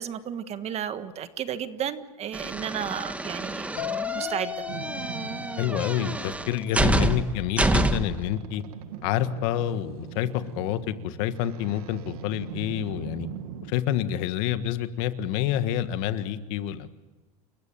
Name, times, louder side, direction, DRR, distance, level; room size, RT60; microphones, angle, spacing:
voice 1, 0.0-3.7 4.1-4.6, right 9 dB, 35° right, 11 dB, 1.5 m, -33 dB
sound 1, 2.3-8.2, right 2 dB, 5° right, 1.3 m, -28 dB
sound 2, 3.8-7.4, left 13 dB, 85° left, 3.8 m, -37 dB
Boat Water vehicle, 4.7-13.7, right 10 dB, 80° right, 1.7 m, -42 dB
voice 2, 5.6-8.6 9.0-10.3 10.6-13.3 13.7-16.9, left 11 dB, 65° left, 11 dB, 1.6 m, -28 dB
29.0 x 15.5 x 9.0 m, 1.2 s
supercardioid pair, 120°, 19 cm